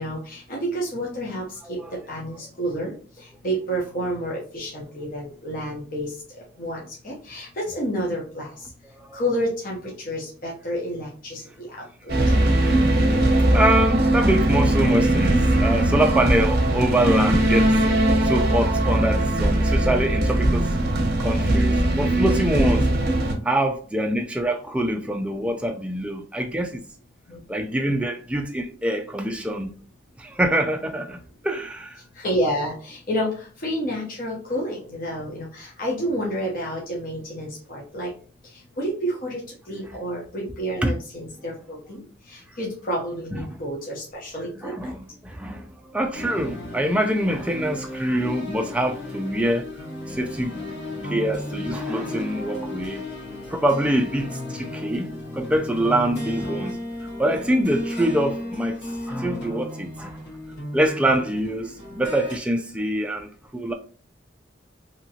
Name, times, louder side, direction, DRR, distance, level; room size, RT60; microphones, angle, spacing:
voice 1, 0.0-8.7 9.1-12.1 27.3-27.4 32.2-38.1 38.5-44.9 54.2-54.3, equal, 45° left, 0.7 m, -30 dB
sound 1, 12.1-23.3, right 1 dB, 50° right, 0.7 m, -20 dB
voice 2, 12.5-12.9 13.2-17.7 18.2-20.7 21.2-22.9 23.4-26.8 27.5-29.7 30.2-31.2 31.4-32.0 40.8-40.9 43.3-43.4 44.6-45.7 45.9-49.6 50.1-50.6 51.0-53.1 53.5-56.7 57.2-60.2 60.7-63.7, right 1 dB, 5° right, 0.3 m, -25 dB
sound 2, 46.1-62.4, left 1 dB, 65° left, 1.2 m, -34 dB
2.8 x 2.5 x 2.7 m
head